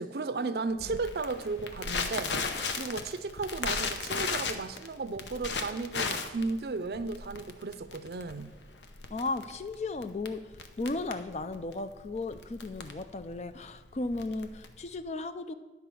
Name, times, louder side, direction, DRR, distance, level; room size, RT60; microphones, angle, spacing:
voice 1, 0.0-2.4 2.7-8.5, right 3 dB, 60° right, 0.5 m, -34 dB
Crackle, 0.8-15.0, left 4 dB, 90° left, 0.8 m, -36 dB
voice 2, 9.1-10.4 10.8-15.5, left 2 dB, 40° left, 0.4 m, -35 dB
10.0 x 4.8 x 6.9 m
head